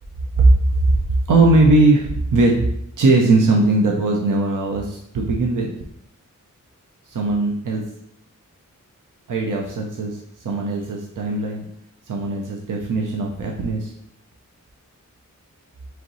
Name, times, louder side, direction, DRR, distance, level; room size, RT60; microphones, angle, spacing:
voice 1, 1.3-2.5 3.0-5.7 7.1-7.8 9.3-10.2 10.4-11.6 12.1-13.9, right 2 dB, 70° right, -1 dB, 0.7 m, -19 dB
4.9 x 3.0 x 3.0 m, 0.73 s
wide cardioid pair, 65°, 33 cm